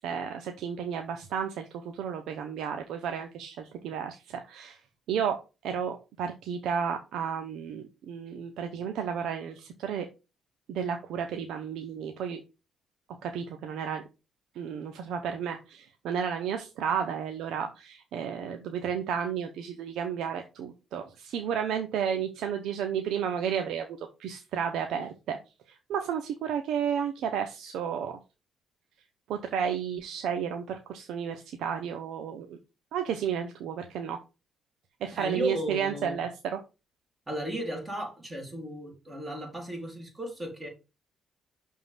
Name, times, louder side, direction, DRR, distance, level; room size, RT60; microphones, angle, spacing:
voice 1, 0.0-4.8 5.1-10.1 10.7-12.4 13.2-14.0 14.5-25.4 25.7-28.2 29.3-32.6 32.9-34.2 35.0-36.6, right 7 dB, 80° right, 0.8 m, -32 dB
voice 2, 35.1-36.2 37.3-40.7, equal, 20° right, 3.7 m, -35 dB
6.1 x 3.7 x 5.6 m
cardioid pair, 90°, 0 cm